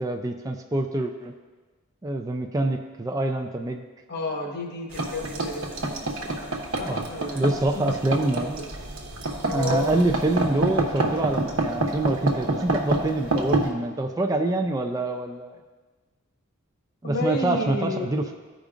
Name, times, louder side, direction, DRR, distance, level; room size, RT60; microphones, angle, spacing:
voice 1, 0.0-1.3 2.0-3.8 6.8-7.1 7.3-8.6 9.5-15.6 17.0-18.3, right 2 dB, 15° right, 4 dB, 0.3 m, -26 dB
voice 2, 4.1-8.7 9.5-9.9 17.0-18.3, left 2 dB, 50° left, 1 dB, 1.1 m, -32 dB
sound 1, 4.9-13.7, right 2 dB, 75° right, 1.0 m, -28 dB
14.5 x 5.1 x 2.5 m, 1.3 s
head